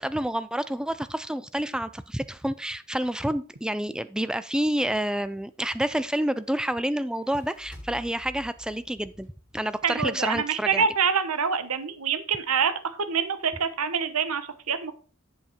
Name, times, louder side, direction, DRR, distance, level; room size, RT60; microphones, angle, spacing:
voice 1, 0.0-9.3 9.5-10.9, right 1 dB, 5° right, 0.4 m, -28 dB
sound 1, 7.1-10.5, left 1 dB, 20° left, 3.5 m, -49 dB
voice 2, 9.8-14.9, right 6 dB, 75° right, 1.1 m, -26 dB
8.3 x 7.2 x 4.4 m
head